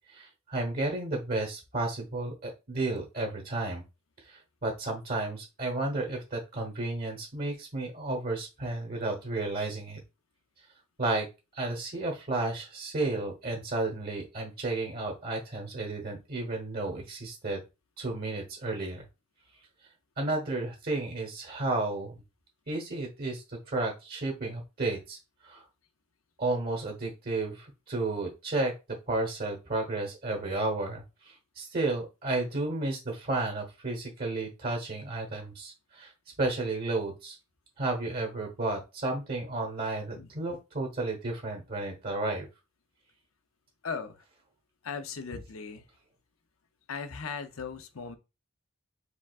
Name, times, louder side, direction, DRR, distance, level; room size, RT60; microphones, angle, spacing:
voice 1, 0.1-3.8 4.2-10.0 11.0-11.3 11.5-17.6 18.0-19.0 20.2-22.2 22.7-25.6 26.4-28.7 29.1-36.1 36.4-37.4 37.8-42.5, right 2 dB, 50° right, 1.1 m, -32 dB
voice 2, 43.8-44.2 44.8-45.9 46.9-48.2, left 5 dB, 85° left, 0.6 m, -38 dB
4.8 x 3.6 x 2.4 m
head